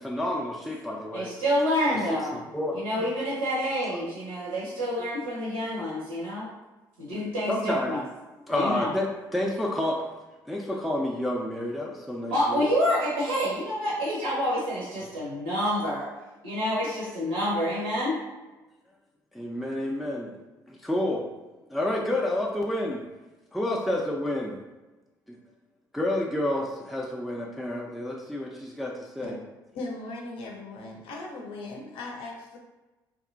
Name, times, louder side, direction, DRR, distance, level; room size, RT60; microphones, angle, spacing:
voice 1, 0.0-1.4 2.3-3.1 5.0-5.1 7.1-8.0 8.5-10.0 10.5-12.6 19.3-20.3 20.7-21.2 21.7-23.0 23.5-24.6 25.3-25.4 25.9-29.3, left 1 dB, ahead, -2 dB, 0.4 m, -29 dB
voice 2, 1.1-2.4 2.7-6.5 7.0-8.0 8.5-8.9 12.3-16.1 16.4-18.2, equal, 80° right, -7 dB, 0.6 m, -28 dB
voice 3, 29.7-32.6, left 2 dB, 60° left, 0 dB, 0.6 m, -38 dB
2.8 x 2.4 x 2.4 m, 1.1 s
figure-of-eight pair, 45°, 10 cm